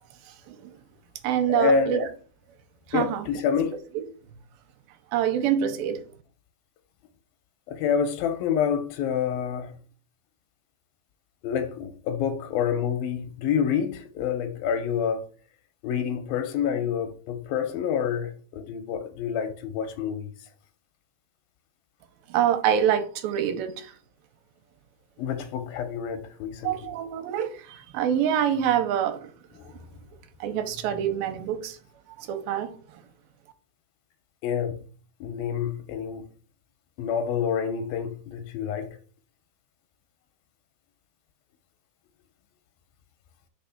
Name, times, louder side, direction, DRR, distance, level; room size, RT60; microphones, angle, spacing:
voice 1, 0.3-0.8 1.2-2.1 2.9-3.3 5.1-6.0 22.3-23.9 26.6-29.3 30.4-31.8 32.2-33.0, right 9 dB, 80° right, 2.3 m, -26 dB
voice 2, 1.5-2.0 2.9-3.7 7.7-9.7 11.4-15.3 15.8-20.3 25.2-26.7 29.7-29.8 34.4-34.8 35.2-36.3 37.0-38.9, left 7 dB, 85° left, 2.3 m, -27 dB
5.4 x 3.5 x 5.7 m
omnidirectional pair, 4.3 m